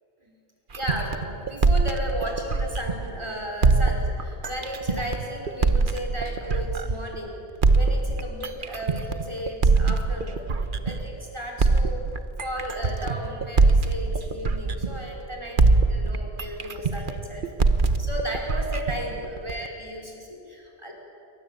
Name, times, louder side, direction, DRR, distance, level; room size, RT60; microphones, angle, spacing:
sound 1, 0.7-3.2 3.6-7.1 7.6-11.2 11.6-15.3 15.6-19.7, right 3 dB, 55° right, 1.3 m, -23 dB
voice 1, 0.8-7.4 7.7-12.0 12.4-15.6 15.9-17.5 18.0-20.9, equal, 25° right, 0 dB, 5.6 m, -34 dB
28.5 x 24.0 x 8.5 m, 2.7 s
omnidirectional pair, 1.1 m